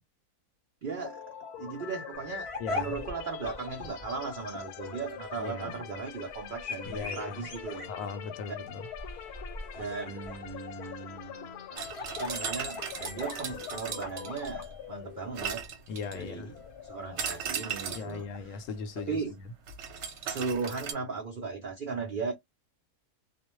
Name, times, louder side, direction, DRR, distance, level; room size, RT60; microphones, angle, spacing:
voice 1, 0.8-1.2 1.6-7.9 8.5-8.6 9.7-11.8 12.1-15.7 16.1-16.5 16.8-18.6 19.0-19.3 20.2-22.3, right 5 dB, 85° right, 0.4 m, -37 dB
sound 1, 1.0-18.8, left 9 dB, 90° left, 1.1 m, -44 dB
sound 2, 2.1-18.8, left 2 dB, 40° left, 0.4 m, -43 dB
voice 2, 2.6-3.0 5.4-5.8 6.8-7.5 7.9-8.9 15.9-16.5 17.9-19.5, left 5 dB, 65° left, 0.9 m, -38 dB
sound 3, 11.8-14.8 15.4-16.3 17.2-18.2 19.7-20.9, right 7 dB, 60° right, 0.9 m, -37 dB
2.4 x 2.1 x 3.0 m
omnidirectional pair, 1.6 m